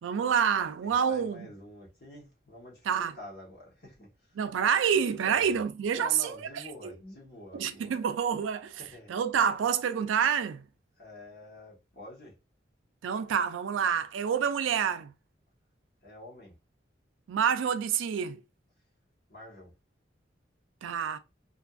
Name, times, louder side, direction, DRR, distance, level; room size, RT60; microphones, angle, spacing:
voice 1, 0.0-1.5 2.9-3.1 4.4-6.4 7.5-8.8 9.1-10.6 13.0-15.1 17.3-18.4 20.8-21.2, right 7 dB, 85° right, 0.4 m, -27 dB
voice 2, 0.8-4.4 5.1-5.6 5.9-8.0 8.8-9.2 11.0-12.3 16.0-16.6 19.3-19.7, left 1 dB, 55° left, 1.2 m, -48 dB
2.6 x 2.5 x 2.3 m
head